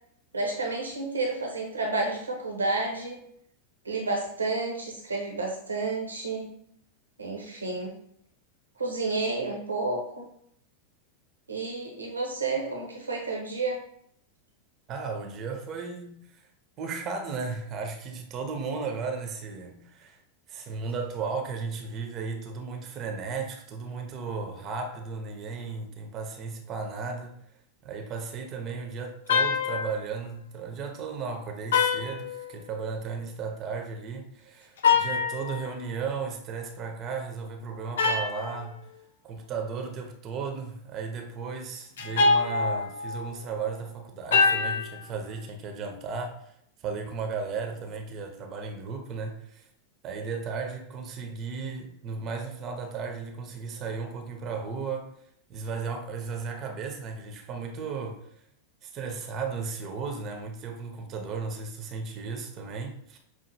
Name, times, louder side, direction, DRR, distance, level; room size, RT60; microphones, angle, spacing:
voice 1, 0.3-3.2 3.8-6.5 7.2-7.9 8.8-10.3 11.5-13.8, right 3 dB, 75° right, 0.7 m, -30 dB
voice 2, 14.9-16.5 16.8-20.2 20.5-27.4 27.8-38.8 39.2-46.5 46.8-49.6 50.0-55.2 55.5-58.3 58.8-63.2, right 5 dB, 35° right, 0.6 m, -35 dB
sound 1, 29.3-30.1 31.7-32.9 34.8-35.7 38.0-38.6 42.0-43.3 44.3-45.0, left 4 dB, 60° left, 0.4 m, -25 dB
5.7 x 2.4 x 2.6 m
figure-of-eight pair, 90°, 0 cm